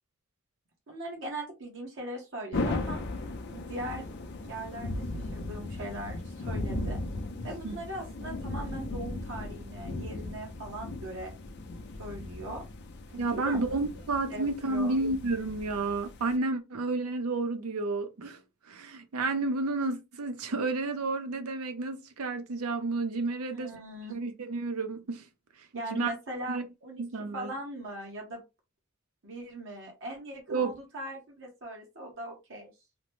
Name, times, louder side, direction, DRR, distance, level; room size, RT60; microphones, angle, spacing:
voice 1, 0.9-3.0 3.5-4.1 4.5-7.0 7.4-11.3 11.9-12.6 13.1-13.6 14.3-15.0 23.5-24.1 25.7-27.0 27.3-28.4 29.2-32.7, right 1 dB, 60° right, 0.9 m, -40 dB
sound 1, 2.5-16.3, left 2 dB, 50° left, 0.4 m, -37 dB
voice 2, 13.2-18.4 18.7-23.7 24.1-25.2 25.9-26.1 26.5-26.6 27.0-27.5 30.5-30.7, right 3 dB, 90° right, 0.6 m, -31 dB
2.9 x 2.0 x 3.1 m
head